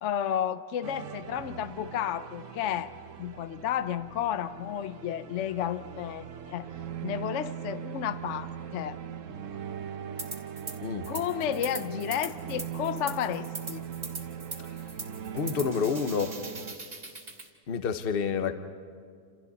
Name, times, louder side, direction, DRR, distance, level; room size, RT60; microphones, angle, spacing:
voice 1, 0.0-2.9 3.2-6.7 7.0-9.0 11.1-13.8, left 10 dB, 60° left, 12 dB, 0.8 m, -32 dB
sound 1, 0.8-16.8, right 8 dB, 55° right, 1.1 m, -40 dB
sound 2, 10.2-10.8 11.0-17.5, right 3 dB, 35° right, 2.4 m, -41 dB
voice 2, 15.3-16.3 17.7-18.5, left 6 dB, 40° left, 8 dB, 1.1 m, -28 dB
29.0 x 28.0 x 4.1 m, 2.1 s
omnidirectional pair, 1.7 m